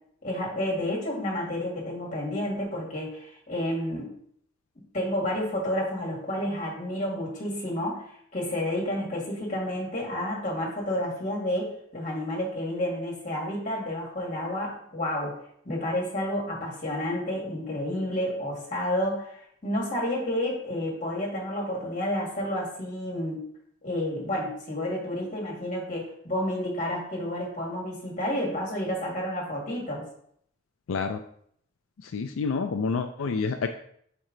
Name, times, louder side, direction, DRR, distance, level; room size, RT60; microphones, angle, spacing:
voice 1, 0.2-4.1 4.9-8.0 8.3-15.4 15.7-23.4 23.8-30.1, left 1 dB, 40° left, -3 dB, 1.9 m, -30 dB
voice 2, 30.9-31.2 32.0-33.7, left 4 dB, 80° left, 6 dB, 0.4 m, -28 dB
5.5 x 4.6 x 3.8 m, 0.66 s
head